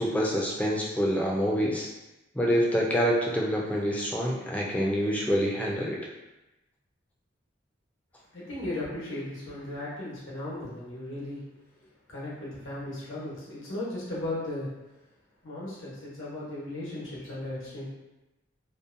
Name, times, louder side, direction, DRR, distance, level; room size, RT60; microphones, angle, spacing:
voice 1, 0.0-1.9 2.3-6.0, equal, 10° left, -3 dB, 0.3 m, -26 dB
voice 2, 8.3-11.4 11.8-14.7 15.4-17.9, left 1 dB, 90° left, -8 dB, 0.9 m, -36 dB
2.6 x 2.1 x 2.5 m, 1.0 s
head